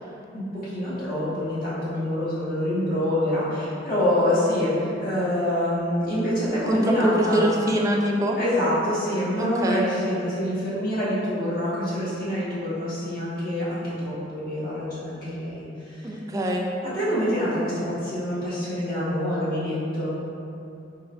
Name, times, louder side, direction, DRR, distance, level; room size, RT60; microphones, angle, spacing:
voice 1, 0.7-7.5 8.3-15.6 16.0-16.1 16.9-20.2, left 1 dB, 50° left, -10 dB, 1.2 m, -26 dB
voice 2, 6.7-8.4 9.4-9.9 16.0-16.7, equal, 20° right, 0 dB, 0.3 m, -24 dB
4.3 x 3.2 x 2.2 m, 2.7 s
head